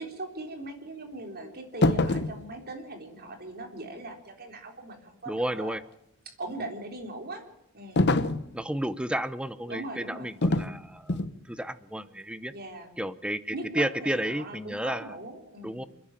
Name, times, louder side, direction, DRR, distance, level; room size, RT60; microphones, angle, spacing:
voice 1, 0.0-5.8 6.3-7.4 7.7-8.1 9.7-10.3 12.5-12.9 13.5-15.9, right 2 dB, 45° right, 5 dB, 3.7 m, -40 dB
sound 1, 1.8-2.4 8.0-8.5 10.4-10.7 11.1-11.4, left 2 dB, 50° left, 1.0 m, -24 dB
voice 2, 5.3-5.8 8.5-12.5 13.0-15.1 15.6-15.8, right 1 dB, 5° right, 14 dB, 0.8 m, -32 dB
29.0 x 10.5 x 9.0 m, 0.82 s
head